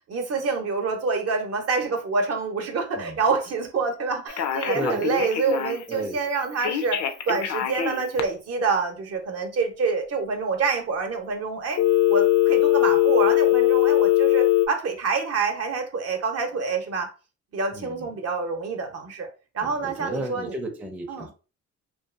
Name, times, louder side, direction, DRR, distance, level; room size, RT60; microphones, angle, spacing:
voice 1, 0.1-7.0 7.3-11.8 12.1-17.1 17.5-19.3 19.5-20.6 21.1-21.3, right 4 dB, 55° right, 0.7 m, -27 dB
Telephone, 4.3-5.9 6.6-8.2 11.8-14.7, left 13 dB, 65° left, 0.5 m, -21 dB
voice 2, 4.7-5.1 5.9-6.2 17.7-18.1 19.6-21.3, right 1 dB, 5° right, 0.5 m, -33 dB
2.5 x 2.4 x 2.3 m
cardioid pair, 90°, 30 cm